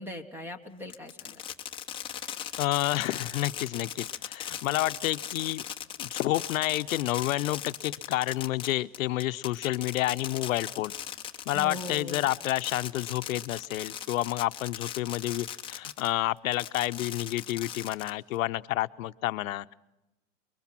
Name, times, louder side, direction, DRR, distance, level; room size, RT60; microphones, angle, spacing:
voice 1, 0.0-1.4 11.5-12.3, left 1 dB, 5° right, 11 dB, 1.4 m, -40 dB
Fireworks, 0.9-16.1 16.5-18.4, left 9 dB, 15° left, 1.0 m, -38 dB
voice 2, 2.6-5.6 6.0-10.9 11.5-19.7, left 16 dB, 85° left, 13 dB, 0.8 m, -29 dB
29.5 x 22.5 x 5.9 m, 0.93 s
supercardioid pair, 165°, 39 cm